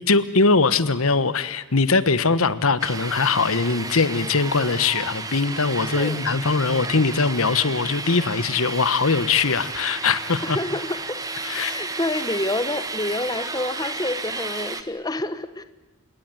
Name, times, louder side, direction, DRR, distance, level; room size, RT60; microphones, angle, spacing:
voice 1, 0.1-10.6 11.4-11.7, left 4 dB, 80° left, 15 dB, 1.3 m, -21 dB
sound 1, 2.8-14.8, right 3 dB, 15° right, 1.5 m, -32 dB
voice 2, 10.4-11.2 11.5-15.6, left 2 dB, 20° left, 12 dB, 1.0 m, -28 dB
30.0 x 18.0 x 9.4 m, 1.1 s
head